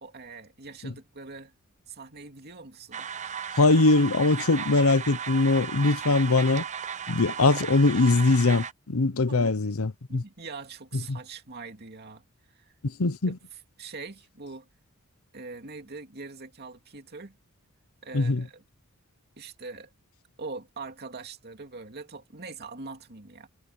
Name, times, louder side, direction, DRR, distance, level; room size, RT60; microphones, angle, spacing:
voice 1, 0.0-1.5 1.9-3.1 9.3-9.6 10.1-12.2 12.5-12.7 13.3-13.4 13.8-14.7 15.3-17.4 18.0-18.6 19.4-19.9 20.4-23.5, right 3 dB, 50° right, 2.6 m, -42 dB
sound 1, 2.9-8.7, right 7 dB, 35° right, 0.7 m, -35 dB
voice 2, 3.6-6.6 7.1-10.2 10.9-11.2 12.8-13.4 18.1-18.4, left 3 dB, 80° left, 0.9 m, -22 dB
head